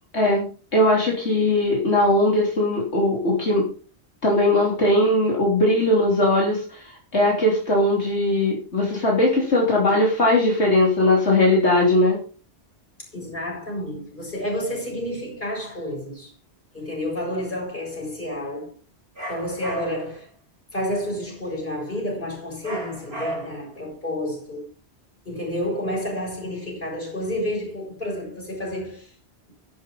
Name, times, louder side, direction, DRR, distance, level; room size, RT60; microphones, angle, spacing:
voice 1, 0.1-3.7 4.2-12.2, left 1 dB, 85° left, 3.6 m, -19 dB
voice 2, 13.1-16.3 16.7-18.7 19.3-20.3 20.7-24.7 25.3-29.1, left 1 dB, 50° left, 7.1 m, -30 dB
sound 1, 19.2-20.2 22.6-23.7, right 1 dB, 65° right, 4.7 m, -33 dB
13.0 x 11.5 x 3.9 m
omnidirectional pair, 1.1 m